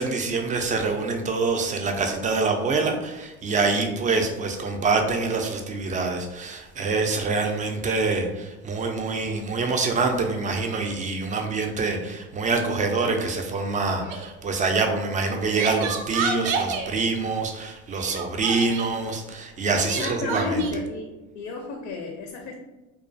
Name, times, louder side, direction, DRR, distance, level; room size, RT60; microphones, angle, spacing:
voice 1, 0.0-20.6, right 3 dB, 25° right, 4 dB, 0.3 m, -25 dB
Crying sobbing, 14.0-14.3 15.2-16.9 18.0-18.9 19.8-20.7, right 5 dB, 80° right, 0.5 m, -30 dB
voice 2, 19.8-21.1 21.3-22.5, left 3 dB, 60° left, 2 dB, 0.5 m, -32 dB
2.3 x 2.3 x 2.5 m, 1.1 s
hypercardioid pair, 80°, 35 cm